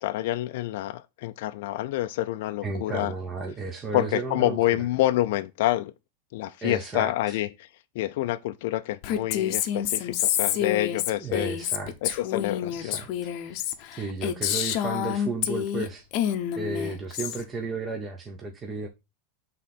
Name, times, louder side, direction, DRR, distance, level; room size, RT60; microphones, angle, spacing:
voice 1, 0.0-3.1 3.9-5.9 6.3-7.7 8.0-11.5 12.0-13.0, left 15 dB, 55° left, 0.4 m, -27 dB
voice 2, 2.6-4.9 6.6-7.4 11.2-12.2 12.8-13.1 13.4-13.7 14.0-16.1 16.6-18.9, right 3 dB, 15° right, 0.7 m, -33 dB
Female speech woman speaking, 9.0-15.9 16.1-17.4, left 10 dB, 35° left, 0.7 m, -28 dB
7.1 x 3.7 x 5.9 m
supercardioid pair, 180°, 0 cm